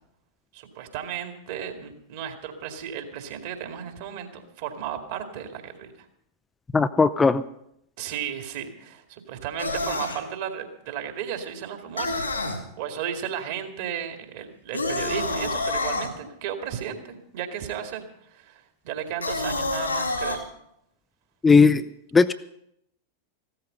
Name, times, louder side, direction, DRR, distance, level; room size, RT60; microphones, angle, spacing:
voice 1, 0.5-6.1 8.0-20.4, right 8 dB, 50° right, 5 dB, 2.3 m, -34 dB
voice 2, 6.7-7.4 21.4-21.8 22.1-22.3, left 4 dB, 15° left, 12 dB, 0.5 m, -17 dB
sound 1, 9.6-10.2 12.0-12.6 14.7-16.1 19.2-20.4, left 2 dB, 80° left, 2.9 m, -28 dB
15.5 x 13.5 x 5.5 m, 0.76 s
figure-of-eight pair, 90°, 0 cm